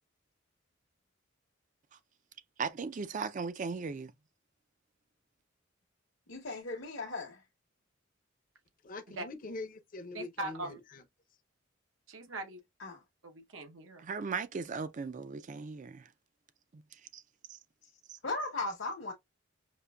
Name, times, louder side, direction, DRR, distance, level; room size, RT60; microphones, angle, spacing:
voice 1, 2.6-4.1 14.0-16.1 16.7-16.8 17.1-17.2 17.5-17.6 18.1-18.2, right 5 dB, 40° right, 0.4 m, -37 dB
voice 2, 6.3-7.4 12.8-13.0 17.8-17.9 18.2-19.1, left 2 dB, 70° left, 0.9 m, -37 dB
voice 3, 8.8-11.0, left 3 dB, 45° left, 0.6 m, -44 dB
voice 4, 10.1-10.8 12.1-12.6 13.2-14.1, right 2 dB, 85° right, 0.9 m, -40 dB
5.1 x 2.5 x 2.2 m
head